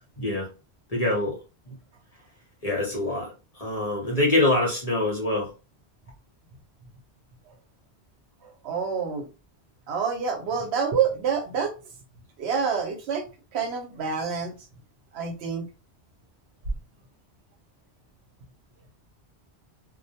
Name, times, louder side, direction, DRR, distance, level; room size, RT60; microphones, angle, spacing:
voice 1, 0.2-0.5 0.9-1.4 2.6-3.3 3.6-5.5, left 2 dB, 40° left, 0.8 m, -24 dB
voice 2, 8.6-9.3 9.9-11.7 12.4-13.2 13.5-14.5 15.1-15.6, right 6 dB, 75° right, 0.9 m, -27 dB
2.2 x 2.1 x 2.7 m
omnidirectional pair, 1.1 m